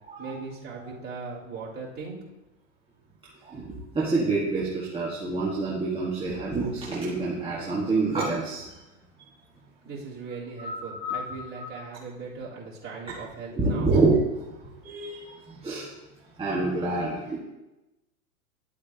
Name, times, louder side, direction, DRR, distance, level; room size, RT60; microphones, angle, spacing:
voice 1, 0.2-2.2 9.8-13.9, right 4 dB, 30° right, -7 dB, 3.7 m, -39 dB
voice 2, 3.4-8.8 10.6-11.7 13.5-14.5 14.8-15.9 16.4-17.4, right 3 dB, 15° right, -7 dB, 1.6 m, -27 dB
11.5 x 8.4 x 2.9 m, 1.0 s
hypercardioid pair, 115°, 43 cm